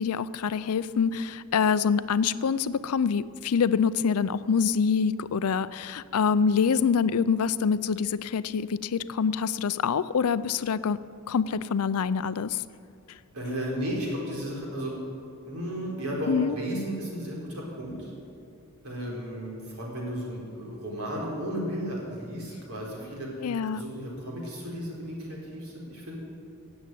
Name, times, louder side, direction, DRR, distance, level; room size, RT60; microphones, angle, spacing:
voice 1, 0.0-11.0 11.3-12.6 16.3-16.5 23.4-23.8, left 6 dB, 75° left, 16 dB, 0.5 m, -25 dB
voice 2, 13.3-15.0 15.5-18.1 18.8-23.5 23.7-26.2, equal, 70° right, -3 dB, 4.3 m, -34 dB
16.0 x 8.1 x 9.1 m, 2.5 s
head